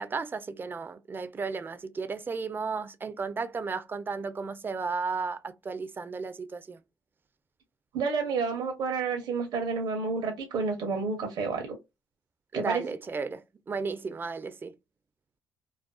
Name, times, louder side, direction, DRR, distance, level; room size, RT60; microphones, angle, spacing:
voice 1, 0.0-6.8 12.5-14.7, right 4 dB, 30° right, 0.4 m, -34 dB
voice 2, 7.9-11.7 12.5-12.8, right 4 dB, 70° right, 0.7 m, -30 dB
2.4 x 2.3 x 2.2 m
supercardioid pair, 75°, 8 cm